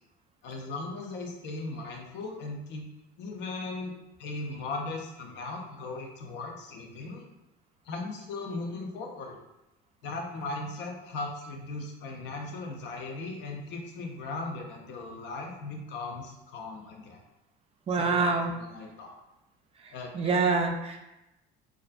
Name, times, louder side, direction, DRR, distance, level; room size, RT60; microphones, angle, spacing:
voice 1, 0.4-2.9 3.2-3.9 4.2-7.2 7.8-9.4 10.0-17.2 17.9-19.2 19.9-20.4, left 3 dB, 60° left, 1 dB, 0.6 m, -38 dB
voice 2, 17.9-18.5 20.1-21.0, right 4 dB, 30° right, 3 dB, 0.3 m, -25 dB
2.4 x 2.2 x 2.4 m, 0.94 s
supercardioid pair, 105°, 21 cm